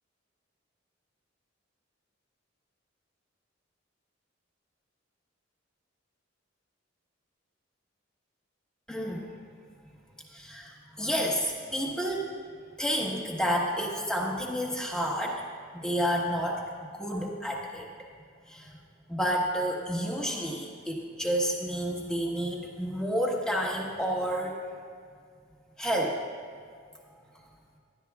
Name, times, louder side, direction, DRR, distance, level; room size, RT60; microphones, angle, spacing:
voice 1, 8.9-9.3 10.3-12.4 12.8-17.9 18.5-18.8 19.1-24.6 25.8-26.2 27.1-27.5, equal, 5° left, -2 dB, 1.3 m, -30 dB
18.5 x 12.0 x 2.4 m, 2.2 s
head